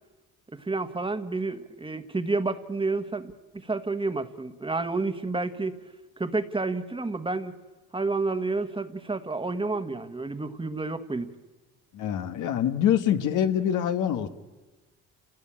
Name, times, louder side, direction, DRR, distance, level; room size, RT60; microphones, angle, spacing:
voice 1, 0.6-3.3 3.7-5.8 6.2-7.5 7.9-11.3, right 3 dB, 15° right, 9 dB, 1.4 m, -30 dB
voice 2, 11.9-14.3, left 10 dB, 85° left, 8 dB, 1.4 m, -25 dB
30.0 x 17.0 x 8.8 m, 1.2 s
cardioid pair, 90°, 30 cm